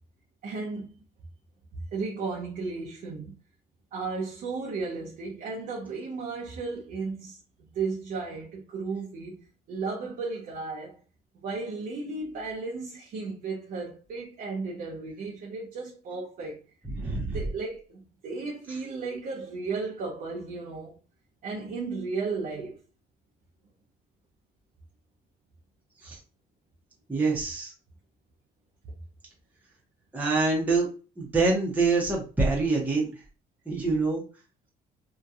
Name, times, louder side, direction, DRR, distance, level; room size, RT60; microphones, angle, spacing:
voice 1, 0.4-0.9 1.7-3.3 3.9-7.4 7.7-9.4 9.7-11.0 11.3-16.6 17.3-21.0 21.4-22.8, right 4 dB, 55° right, 0.6 m, -34 dB
voice 2, 16.9-17.4 26.0-26.2 27.1-27.7 30.1-30.9 31.2-33.1 33.7-34.2, right 3 dB, 10° right, 0.7 m, -25 dB
2.7 x 2.2 x 2.3 m
cardioid pair, 110°, 17 cm